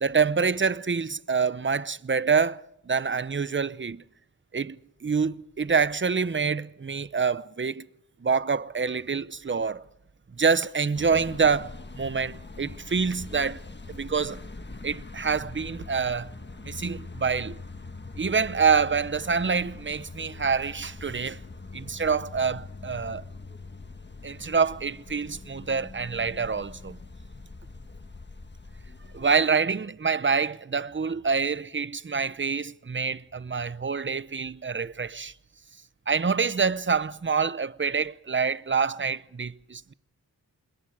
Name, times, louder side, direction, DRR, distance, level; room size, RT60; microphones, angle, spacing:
voice 1, 0.0-4.0 4.5-4.8 5.0-7.8 8.2-9.8 10.4-13.6 13.9-14.4 14.8-16.3 16.6-17.6 18.2-21.4 21.7-23.2 24.2-27.0 29.1-35.3 36.1-39.9, right 5 dB, 30° right, 0.7 m, -26 dB
sound 1, 10.9-29.3, left 3 dB, 30° left, 1.5 m, -43 dB
26.5 x 21.0 x 4.9 m
wide cardioid pair, 80°, 37 cm